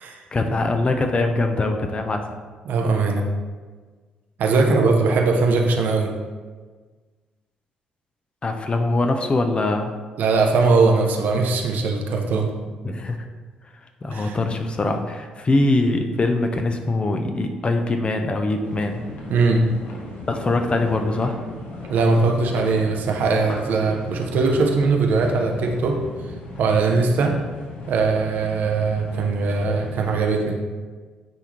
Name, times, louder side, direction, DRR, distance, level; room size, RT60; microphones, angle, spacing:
voice 1, 0.3-2.2 4.6-4.8 8.4-9.9 12.8-13.2 14.0-19.0 20.3-21.3, left 2 dB, 30° left, 5 dB, 0.7 m, -22 dB
voice 2, 2.6-3.3 4.4-6.1 10.2-12.5 14.1-14.3 19.3-19.7 21.9-26.0 26.6-27.4 27.9-30.6, right 4 dB, 55° right, 2 dB, 0.7 m, -20 dB
sound 1, 18.6-30.2, left 2 dB, 55° left, 1.1 m, -36 dB
9.0 x 3.5 x 3.0 m, 1.4 s
figure-of-eight pair, 45°, 3 cm